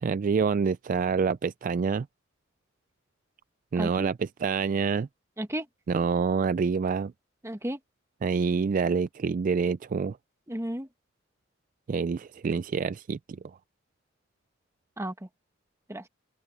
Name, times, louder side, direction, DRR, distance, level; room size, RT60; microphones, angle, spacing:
voice 1, 0.0-2.1 3.7-5.1 5.9-7.1 8.2-10.2 11.9-13.2, right 5 dB, 45° right, 0.3 m, -27 dB
voice 2, 3.7-4.1 5.4-5.7 7.4-7.8 10.5-10.9 15.0-15.3 15.9-16.1, right 1 dB, 15° right, 1.3 m, -33 dB
open air
head